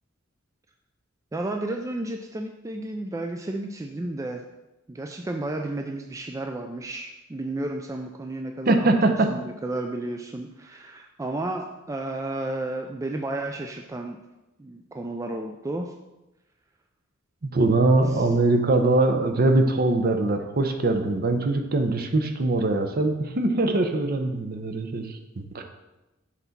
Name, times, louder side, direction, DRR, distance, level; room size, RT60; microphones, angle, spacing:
voice 1, 1.3-4.4 4.9-8.9 9.3-14.2 14.6-15.9, right 2 dB, 15° right, 4 dB, 0.3 m, -32 dB
voice 2, 8.7-9.4 17.4-25.6, right 2 dB, 50° right, 6 dB, 0.7 m, -22 dB
5.9 x 4.0 x 5.8 m, 1.0 s
head